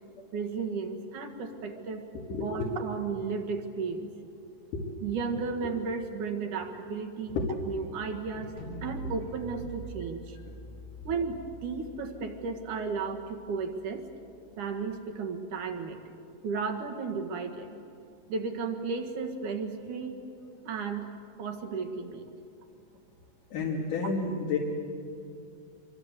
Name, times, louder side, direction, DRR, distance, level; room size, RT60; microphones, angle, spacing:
voice 1, 0.3-2.0 2.3-4.1 5.0-7.4 7.7-8.5 8.8-10.4 11.0-14.0 14.6-16.0 16.4-17.7 18.3-20.2 20.7-21.1 21.4-22.3, right 5 dB, 70° right, 4 dB, 3.2 m, -34 dB
voice 2, 2.3-2.7 4.7-4.9 7.3-7.5 8.4-8.5 23.5-24.6, left 4 dB, 70° left, -2 dB, 3.5 m, -30 dB
sound 1, 8.6-14.5, right 3 dB, 85° right, 6.9 m, -45 dB
26.5 x 23.5 x 8.2 m, 2.5 s
omnidirectional pair, 3.9 m